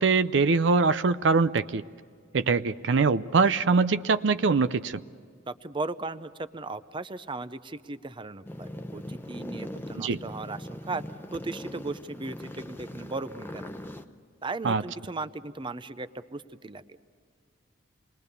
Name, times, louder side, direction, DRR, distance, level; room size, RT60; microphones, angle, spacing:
voice 1, 0.0-1.8 2.3-5.0 10.0-10.2 14.6-14.8, right 4 dB, 70° right, 13 dB, 0.5 m, -23 dB
voice 2, 5.5-11.0 11.3-13.7 14.4-16.8, right 3 dB, 25° right, 13 dB, 0.6 m, -37 dB
sound 1, 8.5-14.1, left 1 dB, 10° left, 0.8 m, -40 dB
27.5 x 21.0 x 6.8 m, 2.1 s
head